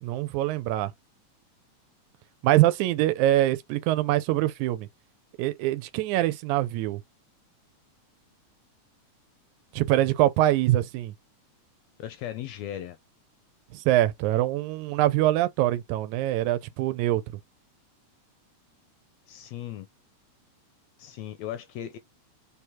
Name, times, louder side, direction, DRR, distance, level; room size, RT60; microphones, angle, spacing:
voice 1, 0.0-0.9 2.4-4.9 5.4-7.0 9.7-11.1 13.7-17.2, right 14 dB, 90° right, 2.0 m, -24 dB
voice 2, 12.0-13.0 19.3-19.9 21.0-22.0, left 11 dB, 80° left, 1.6 m, -37 dB
4.5 x 3.5 x 2.9 m
omnidirectional pair, 3.3 m